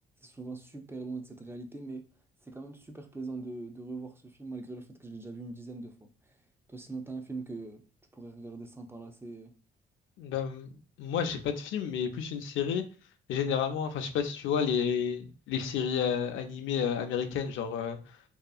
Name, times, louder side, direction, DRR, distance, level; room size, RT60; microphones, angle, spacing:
voice 1, 0.2-2.1 2.4-6.4 6.7-7.8 8.1-9.5, right 3 dB, 10° right, 0.5 m, -42 dB
voice 2, 10.2-10.7 11.0-12.8 13.3-18.0, left 7 dB, 80° left, 0.5 m, -31 dB
2.8 x 2.4 x 2.3 m
cardioid pair, 90°, 20 cm